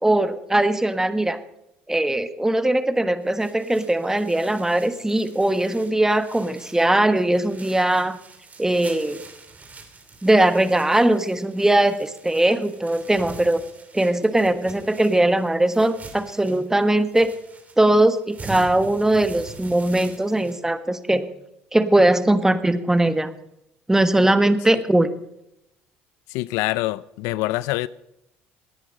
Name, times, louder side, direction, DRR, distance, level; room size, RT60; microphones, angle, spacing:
voice 1, 0.0-1.4 1.9-8.2 8.6-9.3 10.2-13.6 13.9-17.3 17.8-21.3 21.7-23.3 23.9-25.1, right 1 dB, 10° right, 1.2 m, -20 dB
sound 1, 3.2-20.6, right 3 dB, 30° right, 3.2 m, -44 dB
voice 2, 26.3-27.9, left 18 dB, 80° left, 0.4 m, -25 dB
18.0 x 9.9 x 5.3 m
supercardioid pair, 75°, 5 cm